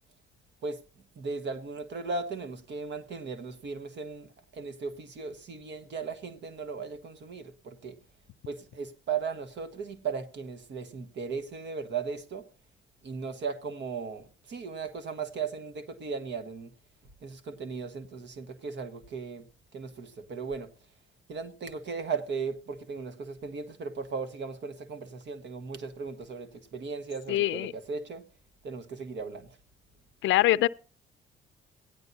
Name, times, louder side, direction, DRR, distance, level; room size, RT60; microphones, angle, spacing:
voice 1, 1.2-8.0 8.5-12.4 13.0-16.7 17.2-19.4 19.7-20.7 21.3-28.2 28.6-29.5, right 5 dB, 65° right, 1.4 m, -37 dB
voice 2, 27.3-27.7 30.2-30.7, left 15 dB, 75° left, 0.4 m, -23 dB
17.0 x 10.5 x 2.7 m
cardioid pair, 90°, 20 cm